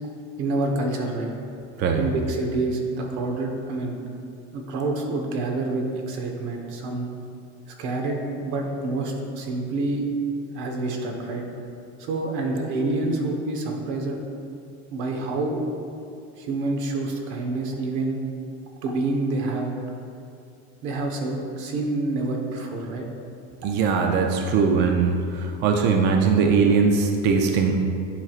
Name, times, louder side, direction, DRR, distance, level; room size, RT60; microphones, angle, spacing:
voice 1, 0.4-1.3 2.0-4.0 4.5-7.1 7.8-10.1 10.5-11.4 12.0-14.3 14.9-15.6 16.4-18.2 18.8-19.8 20.8-23.0, right 2 dB, 85° right, 1 dB, 1.2 m, -27 dB
voice 2, 1.8-2.1 23.6-27.8, right 5 dB, 35° right, 3 dB, 0.4 m, -20 dB
11.0 x 4.6 x 2.4 m, 2.5 s
cardioid pair, 155°, 31 cm